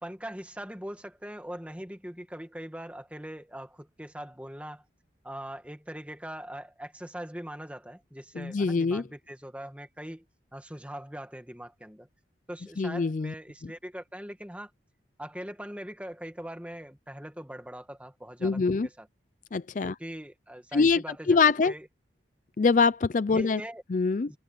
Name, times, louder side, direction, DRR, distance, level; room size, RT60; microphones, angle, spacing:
voice 1, 0.0-4.9 5.2-10.3 10.5-12.1 12.5-14.7 15.2-19.1 19.8-21.9 23.3-23.8 24.3-24.4, equal, 5° right, 1.9 m, -41 dB
voice 2, 8.4-9.0 12.8-13.3 18.4-18.9 19.5-19.9 20.7-21.0 21.3-21.7 22.6-23.6 23.9-24.3, left 4 dB, 45° left, 0.4 m, -24 dB
head